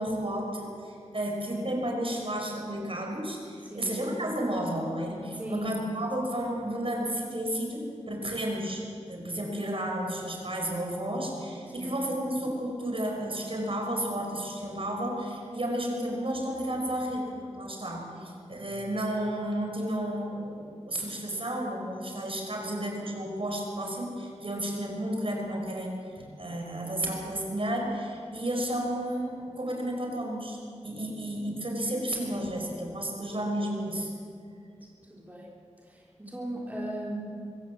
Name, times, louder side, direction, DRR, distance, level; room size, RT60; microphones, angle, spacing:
voice 1, 0.0-30.6 30.8-34.1, right 1 dB, 50° right, 1 dB, 5.4 m, -32 dB
voice 2, 3.6-4.0 5.3-5.7 6.0-6.2 11.8-11.9 18.2-18.3 35.1-35.5 35.8-37.2, right 1 dB, 15° right, -4 dB, 3.8 m, -37 dB
24.5 x 16.0 x 7.5 m, 2.4 s
wide cardioid pair, 65°, 12 cm